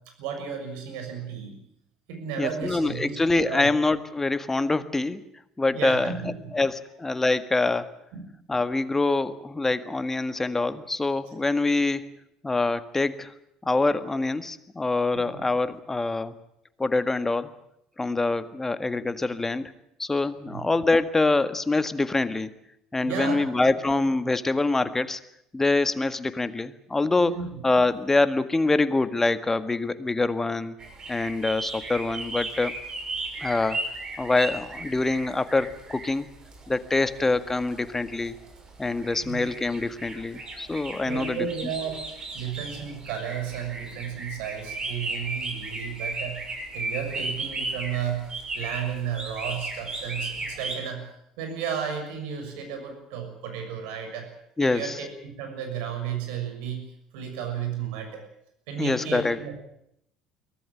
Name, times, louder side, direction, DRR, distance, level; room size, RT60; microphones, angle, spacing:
voice 1, 0.2-1.6 2.1-3.2 3.4-3.7 5.7-6.3 8.1-8.3 15.1-15.3 20.4-20.6 23.0-23.5 27.3-27.6 39.2-39.4 41.0-42.0 42.3-46.4 46.7-51.1 51.4-54.3 54.6-56.9 57.1-58.2 58.7-59.5, right 7 dB, 65° right, 6 dB, 6.6 m, -33 dB
voice 2, 2.4-5.2 5.6-6.1 6.5-7.9 8.5-12.1 12.4-13.3 13.6-16.3 16.8-17.5 18.0-19.7 20.0-22.5 22.9-25.2 25.5-27.4 27.6-30.8 31.1-32.7 33.4-33.8 34.2-36.3 36.7-38.4 38.8-41.5 54.6-55.0 58.8-59.4, left 3 dB, 15° left, 12 dB, 1.7 m, -25 dB
sound 1, 30.8-50.7, right 2 dB, 35° right, 6.2 m, -36 dB
23.5 x 17.0 x 8.9 m, 0.76 s
figure-of-eight pair, 60°, 2 cm